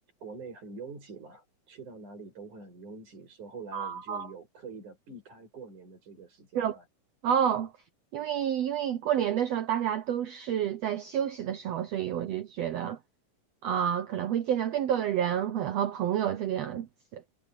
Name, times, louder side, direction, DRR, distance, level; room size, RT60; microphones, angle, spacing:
voice 1, 0.2-6.9, right 4 dB, 60° right, 8.6 m, -45 dB
voice 2, 3.7-4.3 6.5-6.8 7.2-7.7 8.1-13.0 13.6-16.9 17.1-17.2, right 9 dB, 80° right, 1.4 m, -29 dB
omnidirectional pair, 4.0 m